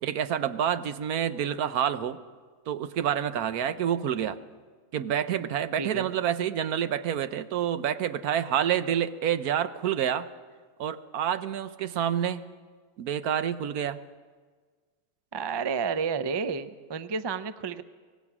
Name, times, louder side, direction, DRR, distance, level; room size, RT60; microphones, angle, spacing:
voice 1, 0.0-2.2 2.7-4.4 4.9-10.3 10.8-12.5 13.0-14.0, right 9 dB, 85° right, 12 dB, 1.3 m, -28 dB
voice 2, 15.3-17.8, right 5 dB, 40° right, 12 dB, 0.3 m, -31 dB
25.0 x 18.0 x 6.0 m, 1.5 s
omnidirectional pair, 1.5 m